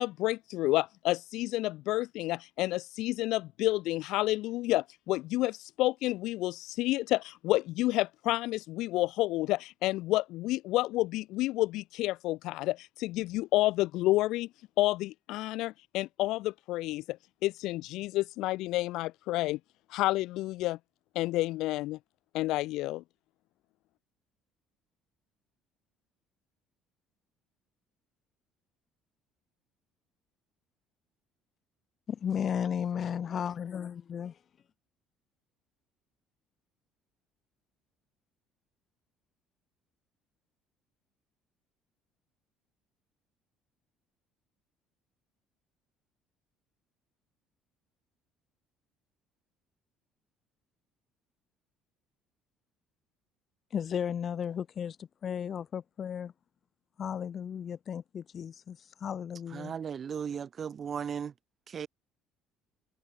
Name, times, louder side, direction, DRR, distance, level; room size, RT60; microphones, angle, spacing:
voice 1, 0.0-14.5 14.8-17.2 17.4-19.6 19.9-20.8 21.2-22.0 22.3-23.0, left 18 dB, 75° left, 0.4 m, -30 dB
voice 2, 32.1-34.3 53.7-55.0 55.2-56.3 57.0-59.7, left 8 dB, 40° left, 1.9 m, -34 dB
voice 3, 59.5-61.3 61.7-61.9, right 7 dB, 35° right, 1.5 m, -36 dB
cardioid pair, 125°, 0 cm